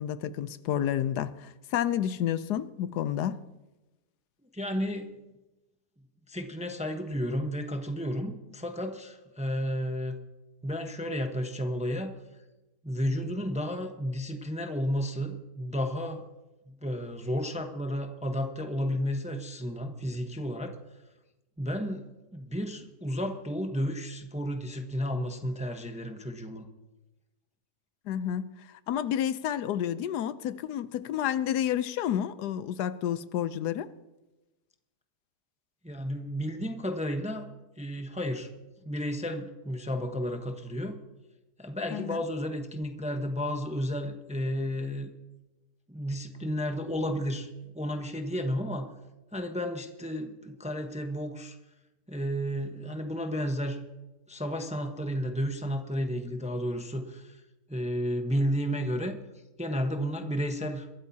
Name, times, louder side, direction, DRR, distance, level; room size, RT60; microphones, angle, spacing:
voice 1, 0.0-3.4 28.1-33.9 41.9-42.2, left 10 dB, 80° left, 1.2 m, -30 dB
voice 2, 4.5-5.1 6.3-10.2 10.6-12.2 12.8-16.2 16.7-20.8 21.6-26.7 35.8-37.5 37.8-38.5 38.8-41.0 41.6-45.1 45.9-48.9 49.3-51.6 52.1-53.8 54.3-57.4 57.7-59.2 59.6-60.9, equal, 5° right, 0.7 m, -32 dB
23.0 x 13.0 x 2.8 m
omnidirectional pair, 1.7 m